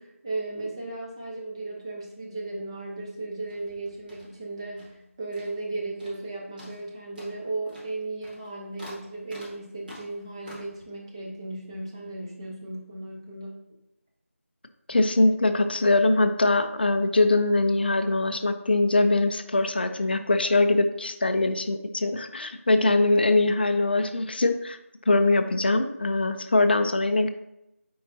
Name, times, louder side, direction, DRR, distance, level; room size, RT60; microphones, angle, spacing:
voice 1, 0.0-13.6, right 2 dB, 20° right, -3 dB, 0.9 m, -36 dB
sound 1, 3.4-5.1 5.3-5.7 6.0-6.3 6.6-10.8, equal, 40° right, 1.7 m, -48 dB
voice 2, 14.9-24.8 25.1-27.3, left 2 dB, 45° left, 9 dB, 0.4 m, -22 dB
7.3 x 4.7 x 2.7 m, 0.85 s
figure-of-eight pair, 165°, 8 cm